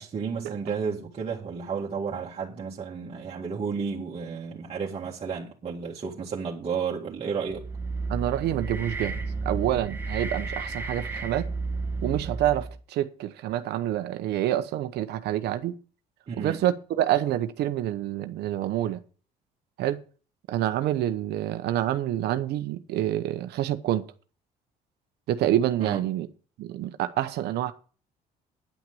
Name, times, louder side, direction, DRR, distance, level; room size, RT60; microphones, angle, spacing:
voice 1, 0.0-7.6 16.3-16.6 25.8-26.1, right 6 dB, 35° right, 2.0 m, -32 dB
sound 1, 7.5-12.8, right 3 dB, 10° right, 2.2 m, -32 dB
voice 2, 8.1-9.2 9.4-11.5 12.0-15.7 16.4-19.0 19.8-20.0 20.5-24.1 25.3-26.3 26.6-27.7, right 12 dB, 75° right, 0.9 m, -27 dB
10.0 x 6.0 x 7.7 m
cardioid pair, 110°, 17 cm